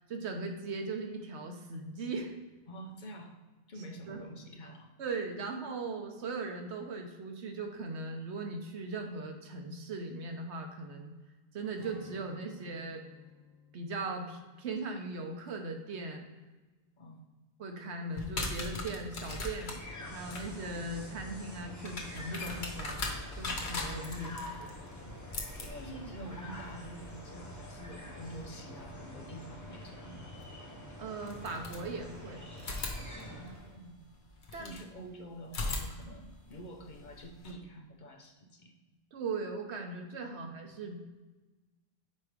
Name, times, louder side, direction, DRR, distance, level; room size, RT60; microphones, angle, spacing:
voice 1, 0.1-2.3 4.1-4.2 5.0-11.1 11.5-13.0 13.7-16.3 17.6-19.8 20.1-24.7 31.0-32.4 34.5-34.8 39.1-41.1, right 3 dB, 85° right, 4 dB, 1.2 m, -39 dB
voice 2, 2.7-3.4 3.7-4.9 17.0-17.2 25.6-30.4 33.1-34.0 34.5-38.7 40.4-40.5, right 1 dB, 50° left, 3 dB, 0.8 m, -47 dB
Strum, 11.8-16.5 16.9-17.1, left 4 dB, 40° right, 1.5 m, -58 dB
sound 1, 18.1-28.9 30.4-30.5 31.2-32.2 32.6-34.9 35.4-37.5, left 2 dB, 75° left, 1.3 m, -41 dB
sound 2, 19.5-33.8, left 1 dB, 15° left, 1.0 m, -46 dB
5.4 x 4.7 x 5.0 m, 1.2 s
omnidirectional pair, 1.1 m